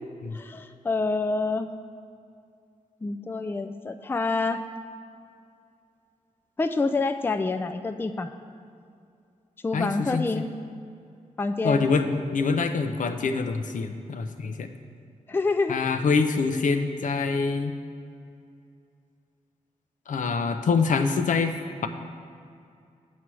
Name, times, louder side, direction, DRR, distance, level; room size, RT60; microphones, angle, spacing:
voice 1, 0.3-1.7 3.0-4.6 6.6-8.3 9.6-10.5 11.4-11.9 15.3-15.8, left 3 dB, 15° left, 7 dB, 0.4 m, -27 dB
voice 2, 9.7-10.5 11.6-14.7 15.7-17.7 20.1-21.5, left 4 dB, 70° left, 7 dB, 0.6 m, -25 dB
8.4 x 4.7 x 7.5 m, 2.4 s
wide cardioid pair, 90°, 14 cm